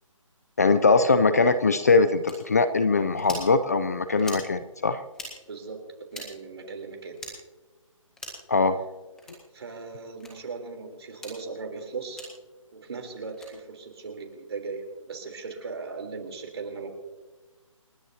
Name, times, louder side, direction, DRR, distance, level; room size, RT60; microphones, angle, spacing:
voice 1, 0.6-5.0 8.5-8.8, left 4 dB, 30° left, 12 dB, 0.4 m, -21 dB
sound 1, 2.3-2.4 3.2-3.5 4.2-4.5 5.1-5.3 6.1-6.3 7.2-7.3 8.2-8.5 9.2-9.4 10.2-10.3 11.1-11.4 12.2-12.3 13.3-13.5, left 1 dB, 5° left, 1.7 m, -40 dB
voice 2, 5.5-5.8 6.1-7.2 9.5-12.3 12.7-16.9, right 4 dB, 50° right, 4 dB, 3.6 m, -38 dB
29.0 x 10.0 x 2.8 m, 1.2 s
hypercardioid pair, 170°, 17 cm